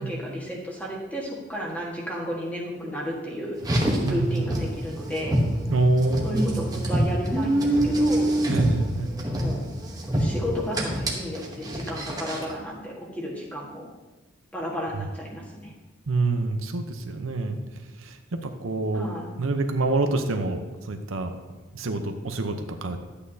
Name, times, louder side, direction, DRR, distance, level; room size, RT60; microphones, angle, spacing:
voice 1, 0.0-5.4 6.2-8.4 9.2-9.6 10.1-13.9 14.5-15.7 18.9-19.3, equal, 5° left, -3 dB, 1.5 m, -33 dB
Car, 3.6-12.5, right 1 dB, 20° right, 1.0 m, -26 dB
voice 2, 4.0-4.4 5.7-6.6 8.5-9.2 16.1-17.6 18.0-18.2 18.4-19.1 19.4-21.3 21.7-23.0, right 2 dB, 80° right, 6 dB, 0.8 m, -26 dB
11.5 x 8.4 x 2.8 m, 1.2 s
head